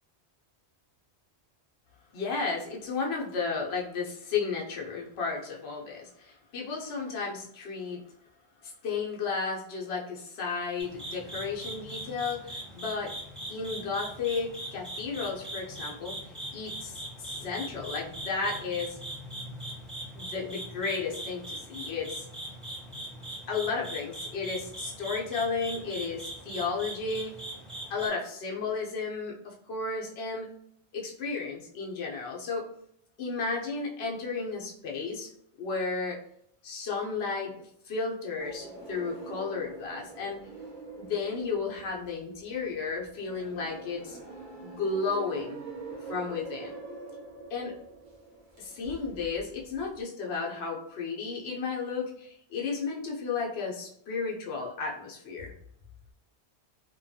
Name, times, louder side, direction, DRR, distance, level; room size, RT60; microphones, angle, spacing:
voice 1, 2.1-8.0 8.6-13.1 13.5-16.2 16.5-19.0 20.1-22.3 23.5-27.3 27.9-30.5 30.9-32.6 33.2-35.3 35.6-36.2 36.6-37.5 37.9-40.4 41.0-44.2 44.6-45.6 46.1-46.7 47.5-47.7 48.6-55.5, left 4 dB, 75° left, -2 dB, 0.9 m, -33 dB
sound 1, 10.8-28.1, right 1 dB, ahead, 0.4 m, -41 dB
sound 2, 38.4-50.0, right 3 dB, 50° right, 0.9 m, -45 dB
3.0 x 2.2 x 2.7 m, 0.71 s
omnidirectional pair, 1.1 m